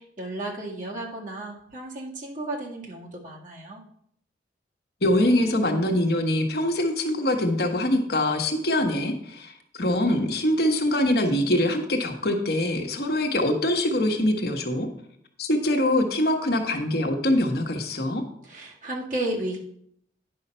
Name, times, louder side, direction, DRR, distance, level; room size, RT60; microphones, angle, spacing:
voice 1, 0.0-3.8 18.4-19.6, right 1 dB, 45° right, -2 dB, 2.0 m, -33 dB
voice 2, 5.0-14.9 15.4-18.2, left 1 dB, 60° left, 3 dB, 1.2 m, -24 dB
9.7 x 5.6 x 5.5 m, 0.69 s
head